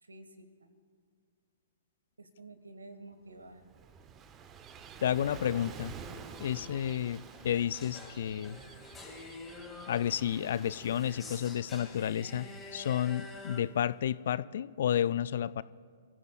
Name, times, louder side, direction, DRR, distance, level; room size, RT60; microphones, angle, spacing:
voice 1, 0.0-0.7 2.2-3.7, right 2 dB, 80° right, 10 dB, 1.4 m, -51 dB
Gull seagull / Waves surf, 3.4-13.9, right 6 dB, 25° right, 0.8 m, -50 dB
voice 2, 5.0-6.0 6.4-8.6 9.9-15.6, left 10 dB, 55° left, 19 dB, 0.3 m, -31 dB
sound 1, 5.9-13.6, left 3 dB, 15° left, 2.1 m, -49 dB
28.5 x 15.0 x 2.4 m, 2.1 s
figure-of-eight pair, 115°, 0 cm